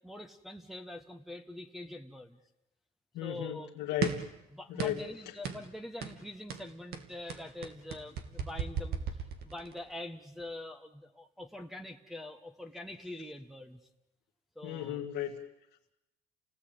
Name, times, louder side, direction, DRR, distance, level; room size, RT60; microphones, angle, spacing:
voice 1, 0.0-2.4 3.2-3.7 4.5-9.0 9.4-13.8 14.5-15.1, left 1 dB, ahead, 1 dB, 1.5 m, -44 dB
voice 2, 3.1-4.2 4.7-5.0 14.6-15.4, left 11 dB, 85° left, -1 dB, 2.2 m, -35 dB
sound 1, 4.0-4.3 4.8-5.1 5.4-5.7 6.0-6.2 6.5-9.8, right 7 dB, 70° right, 2.7 m, -36 dB
29.5 x 18.0 x 9.0 m, 0.92 s
cardioid pair, 110°, 17 cm